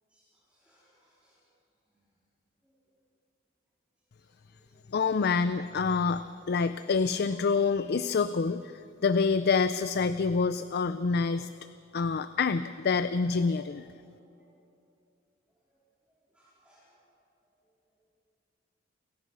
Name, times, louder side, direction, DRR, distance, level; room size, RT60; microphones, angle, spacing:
voice 1, 0.1-1.4 1.9-2.0 2.6-2.7 4.2-4.9 5.2-5.5 13.7-14.6 15.7-15.8 16.3-17.0, equal, 5° right, -8 dB, 4.0 m, -64 dB
voice 2, 4.9-11.5 11.9-13.9, left 5 dB, 55° left, 12 dB, 0.5 m, -27 dB
29.5 x 14.0 x 6.3 m, 2.6 s
head